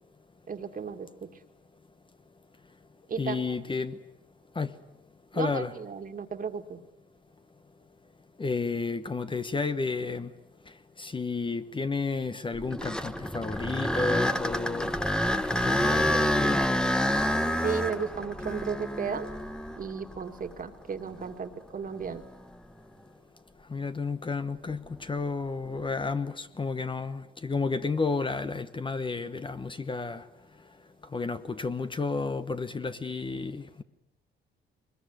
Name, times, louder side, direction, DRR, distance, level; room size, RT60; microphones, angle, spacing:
voice 1, 0.5-1.3 3.1-3.4 5.3-6.8 17.6-19.3 19.8-22.2, right 6 dB, 45° right, 2.2 m, -34 dB
voice 2, 3.2-4.0 4.5-4.7 5.3-5.7 8.4-10.3 11.0-15.0 15.6-16.6 23.7-30.3 31.1-33.8, left 4 dB, 25° left, 1.1 m, -31 dB
sound 1, 12.5-20.6 21.2-21.3 22.0-22.2 25.7-26.0, left 1 dB, 5° left, 1.2 m, -28 dB
22.5 x 21.0 x 9.6 m
cardioid pair, 90°, 20 cm